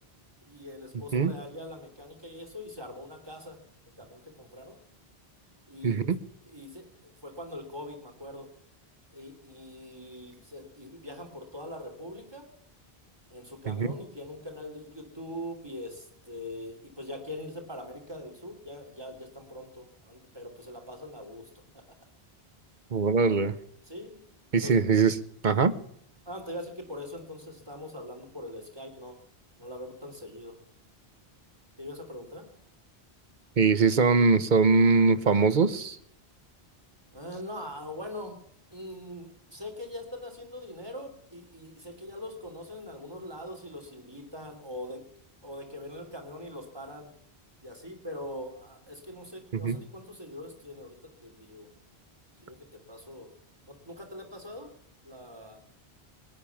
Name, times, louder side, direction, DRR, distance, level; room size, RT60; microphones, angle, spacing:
voice 1, 0.4-3.6 4.0-4.8 5.7-6.0 6.5-8.5 9.1-12.5 13.3-21.8 23.9-24.3 24.6-24.7 26.2-29.2 29.6-30.6 31.8-32.5 37.1-38.4 38.7-45.0 45.4-47.1 47.6-50.9 51.2-51.7 52.4-53.3 53.7-54.7 55.0-55.6, left 1 dB, 25° right, 3 dB, 3.3 m, -42 dB
voice 2, 5.8-6.2 13.7-13.9 22.9-23.5 24.5-25.2 25.4-25.7 33.6-36.0 49.5-49.8, right 4 dB, 50° right, 13 dB, 1.1 m, -22 dB
18.5 x 10.5 x 7.2 m, 0.69 s
omnidirectional pair, 1.1 m